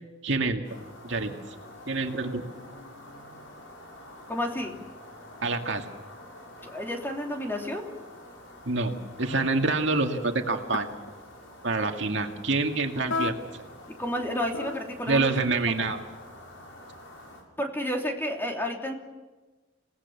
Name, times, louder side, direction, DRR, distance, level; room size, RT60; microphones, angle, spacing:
voice 1, 0.2-0.6 1.0-1.4 1.9-2.4 5.4-5.9 8.6-11.0 11.6-13.4 15.1-16.0, right 3 dB, 65° right, 4 dB, 2.1 m, -26 dB
sound 1, 0.6-17.4, left 1 dB, 90° left, 6.3 m, -48 dB
voice 2, 4.3-4.8 6.6-7.9 14.0-15.4 15.7-15.9 17.6-19.0, left 1 dB, 10° left, 2 dB, 2.9 m, -31 dB
sound 2, 8.9-9.0 9.6-10.1 10.7-11.1 13.1-13.6 13.9-14.8, left 3 dB, 70° left, 1.3 m, -32 dB
28.0 x 18.0 x 7.2 m, 1.2 s
head